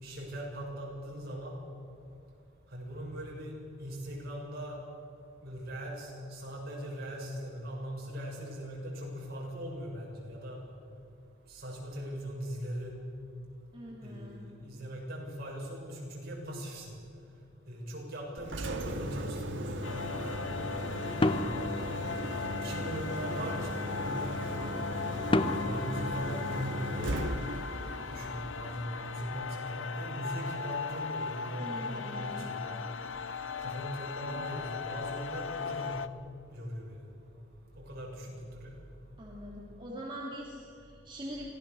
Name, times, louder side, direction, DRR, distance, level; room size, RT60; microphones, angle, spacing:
voice 1, 0.0-1.6 2.7-3.5 3.8-4.8 5.4-10.6 11.5-13.0 14.0-16.9 17.7-19.9 21.3-21.8 22.6-24.4 25.5-27.2 28.1-32.9 33.6-36.0 36.5-37.0 37.8-38.7, equal, 50° right, -2 dB, 6.8 m, -40 dB
voice 2, 13.7-14.4 21.3-21.6 31.6-32.5 39.2-41.5, equal, 25° right, -4 dB, 2.7 m, -43 dB
Engine, 18.4-29.3, equal, 70° right, 1.8 m, -37 dB
sound 1, 19.8-36.1, left 5 dB, 85° left, 0.7 m, -38 dB
sound 2, 21.2-22.7 25.3-27.1, left 2 dB, 25° left, 0.8 m, -32 dB
25.0 x 17.0 x 7.0 m, 2.6 s
head